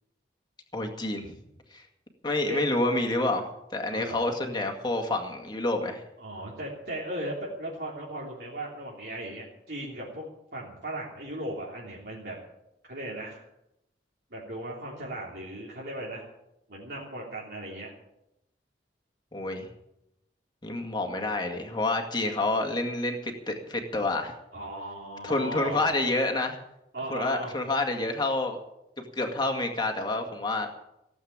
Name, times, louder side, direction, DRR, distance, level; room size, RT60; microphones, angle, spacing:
voice 1, 0.7-1.3 1.7-1.8 2.2-6.0 19.3-19.7 20.6-24.3 25.2-26.6 27.1-28.6 29.1-30.7, left 2 dB, 25° left, 3 dB, 2.0 m, -28 dB
voice 2, 3.9-4.3 6.2-12.4 12.9-13.4 14.3-16.3 16.7-17.9 24.5-25.9 26.9-27.5, right 1 dB, 60° right, -5 dB, 3.3 m, -37 dB
17.0 x 8.2 x 8.7 m, 0.85 s
head